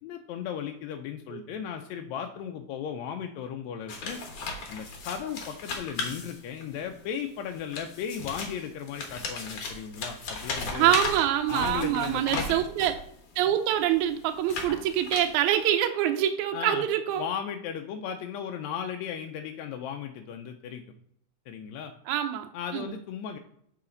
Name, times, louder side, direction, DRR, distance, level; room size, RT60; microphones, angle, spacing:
voice 1, 0.0-4.2 4.7-10.9 11.5-12.6 16.5-16.9 17.2-20.8 21.5-21.9 22.5-23.4, left 8 dB, 80° left, 5 dB, 1.7 m, -36 dB
sound 1, 3.9-6.8 7.5-13.0 13.7-15.6, left 3 dB, 60° left, 2.2 m, -36 dB
voice 2, 10.7-13.0 13.4-17.3 22.1-22.9, right 11 dB, 80° right, 6 dB, 1.9 m, -25 dB
8.8 x 4.8 x 3.8 m, 0.70 s
omnidirectional pair, 3.4 m